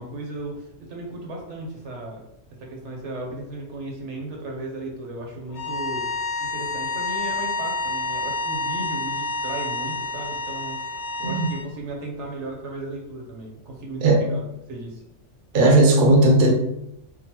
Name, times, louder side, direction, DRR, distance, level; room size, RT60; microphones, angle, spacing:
voice 1, 0.0-2.3 2.6-6.0 6.4-10.8 11.2-14.4 14.7-15.0, right 2 dB, 75° right, 0 dB, 1.0 m, -35 dB
sound 1, 5.5-11.6, left 2 dB, 70° left, 0.8 m, -29 dB
voice 2, 15.5-16.5, right 2 dB, 55° right, 0 dB, 0.7 m, -16 dB
3.7 x 2.0 x 2.8 m, 0.80 s
omnidirectional pair, 1.2 m